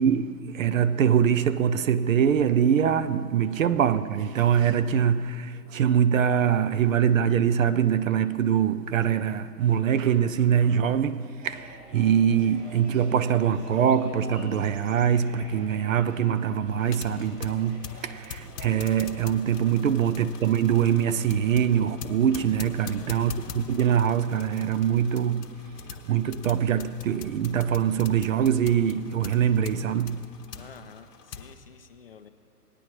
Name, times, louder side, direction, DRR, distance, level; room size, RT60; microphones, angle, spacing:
voice 1, 0.0-25.5 26.0-30.2, right 8 dB, 55° right, 0.5 m, -23 dB
sound 1, 11.4-27.7, equal, 75° right, 2.5 m, -49 dB
sound 2, 13.8-16.0 16.5-16.6 17.9-18.0, equal, 15° right, 1.5 m, -53 dB
sound 3, 16.8-31.5, left 7 dB, 75° left, 1.0 m, -43 dB
voice 2, 22.9-23.3 30.5-32.3, left 6 dB, 40° left, 0.4 m, -50 dB
18.5 x 9.7 x 3.0 m
hypercardioid pair, 135°, 48 cm